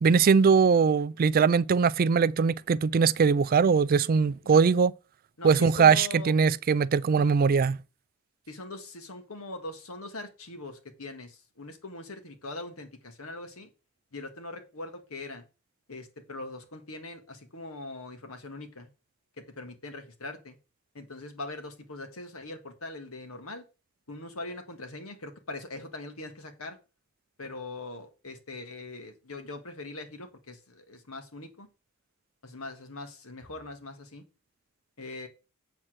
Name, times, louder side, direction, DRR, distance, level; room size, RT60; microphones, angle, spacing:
voice 1, 0.0-4.9 5.4-7.8, right 5 dB, 45° right, 0.4 m, -21 dB
voice 2, 5.4-6.3 8.5-13.7 14.1-15.4 15.9-18.9 19.6-20.6 21.0-23.6 24.1-26.8 27.4-31.7 32.4-34.2 35.0-35.3, left 2 dB, 85° left, 1.7 m, -41 dB
8.2 x 4.3 x 6.2 m
head